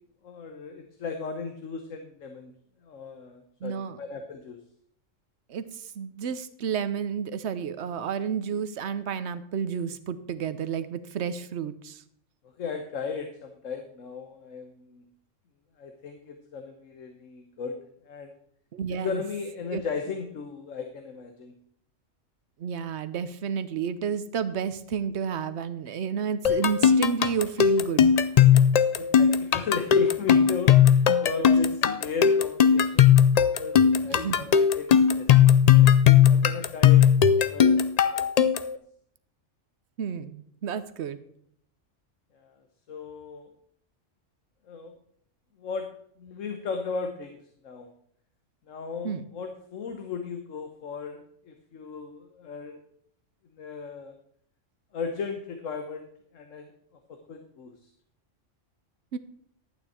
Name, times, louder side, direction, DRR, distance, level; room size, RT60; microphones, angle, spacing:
voice 1, 0.2-2.5 2.8-4.6 12.6-15.1 15.8-17.8 18.0-18.3 18.9-21.6 29.0-33.2 33.6-35.9 36.3-38.3 38.5-38.7 42.3-42.5 42.9-43.5 44.7-44.9 45.6-45.9 46.2-47.4 47.6-47.9 48.7-52.8 53.5-54.1 54.9-56.0 56.3-56.7 57.1-57.9, left 5 dB, 80° left, 6 dB, 1.4 m, -36 dB
voice 2, 3.6-4.0 5.5-5.7 6.0-12.0 18.7-19.2 19.7-19.8 22.6-28.1 34.1-34.4 40.0-41.2 49.0-49.3 59.1-59.2, right 7 dB, 65° right, 13 dB, 1.0 m, -31 dB
sound 1, 26.4-38.8, left 8 dB, 60° left, 0.4 m, -18 dB
11.5 x 9.1 x 4.3 m, 0.67 s
omnidirectional pair, 1.3 m